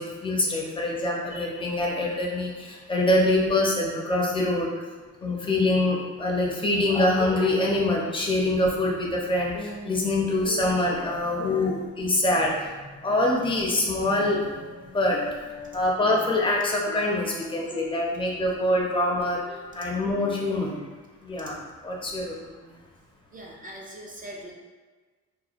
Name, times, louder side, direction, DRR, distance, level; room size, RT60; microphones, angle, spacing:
voice 1, 0.0-4.7 5.2-15.2 15.5-19.4 19.7-20.8 21.2-22.7, left 1 dB, 15° left, -3 dB, 0.6 m, -25 dB
sound 1, 8.9-11.0 11.4-13.8 14.2-18.3 18.6-20.6, left 3 dB, 55° left, 0.7 m, -41 dB
voice 2, 23.3-24.5, right 1 dB, 30° right, -2 dB, 0.4 m, -41 dB
2.9 x 2.2 x 2.4 m, 1.3 s
cardioid pair, 90°, 30 cm